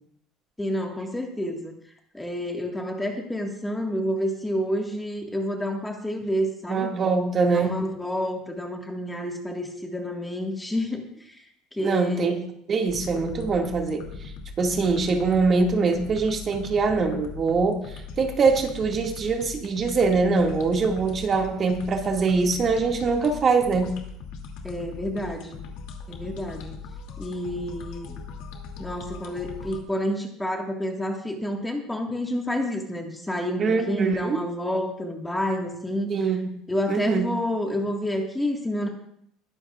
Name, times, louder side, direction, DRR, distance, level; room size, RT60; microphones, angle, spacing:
voice 1, 0.6-1.7 2.1-6.9 7.5-11.5 11.7-12.3 24.6-25.6 26.1-26.8 27.2-28.2 28.8-36.1 36.7-38.9, equal, 5° left, 2 dB, 1.7 m, -29 dB
voice 2, 6.7-7.8 11.8-12.4 12.7-14.3 14.6-17.8 18.2-23.9 33.6-34.4 36.1-36.6 36.9-37.2, right 4 dB, 30° right, 2 dB, 2.0 m, -23 dB
sound 1, 12.9-29.8, left 5 dB, 70° left, 2.5 m, -40 dB
21.0 x 11.5 x 2.4 m, 0.71 s
cardioid pair, 145°, 0 cm